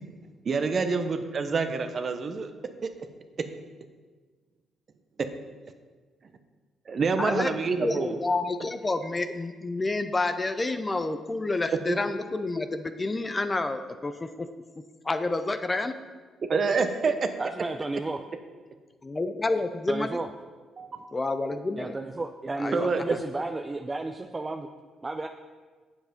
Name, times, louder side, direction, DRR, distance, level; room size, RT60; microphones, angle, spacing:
voice 1, 0.4-2.5 6.9-8.2 11.9-12.0 16.5-17.1 20.8-21.1 22.7-23.2, right 4 dB, 45° right, 8 dB, 0.8 m, -27 dB
voice 2, 7.2-7.5 7.8-14.5 15.0-15.9 19.0-20.2 21.1-22.0 22.6-23.2, left 2 dB, 25° left, 9 dB, 0.6 m, -29 dB
voice 3, 17.4-18.2 19.9-20.3 21.8-24.7 25.0-25.3, right 2 dB, 25° right, 4 dB, 0.5 m, -32 dB
7.9 x 7.3 x 5.2 m, 1.4 s
cardioid pair, 90°, 0 cm